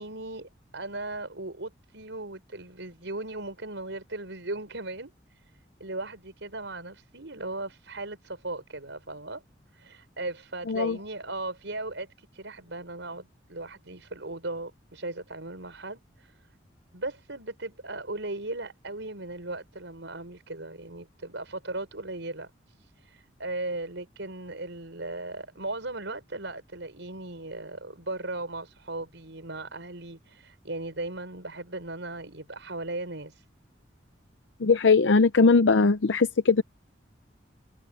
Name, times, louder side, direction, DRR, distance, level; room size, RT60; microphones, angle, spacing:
voice 1, 0.0-5.5 5.8-9.4 9.7-16.4 16.9-33.4, right 2 dB, 80° right, 5.2 m, -37 dB
voice 2, 10.7-11.0 34.6-36.6, left 4 dB, 80° left, 0.6 m, -20 dB
head